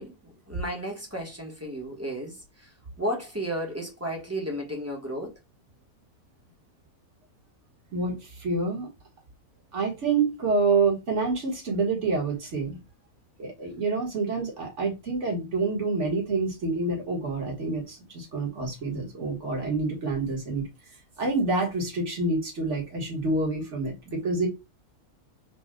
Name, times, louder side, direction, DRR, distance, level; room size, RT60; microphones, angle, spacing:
voice 1, 0.0-2.7 3.0-5.3, equal, 10° right, 1.4 m, -33 dB
voice 2, 7.9-8.9 9.7-12.8 13.4-20.6 21.2-24.5, right 3 dB, 50° right, 2.2 m, -27 dB
5.0 x 2.7 x 3.8 m
omnidirectional pair, 1.6 m